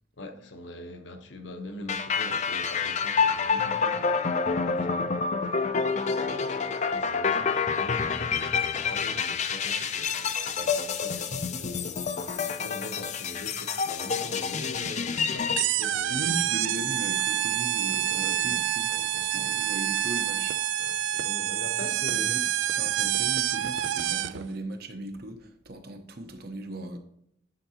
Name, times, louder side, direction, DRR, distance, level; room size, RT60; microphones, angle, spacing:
voice 1, 0.2-5.5 6.2-16.5 18.0-19.8 20.8-22.4, left 1 dB, 75° left, 1.0 m, -43 dB
sound 1, 1.9-15.6, left 5 dB, 35° left, 0.5 m, -28 dB
degonfl droit, 15.6-24.5, right 12 dB, 80° right, 0.4 m, -27 dB
voice 2, 16.1-18.9 19.3-20.6 22.1-22.4 22.7-27.0, right 1 dB, 55° right, 1.0 m, -38 dB
10.0 x 5.8 x 2.9 m
head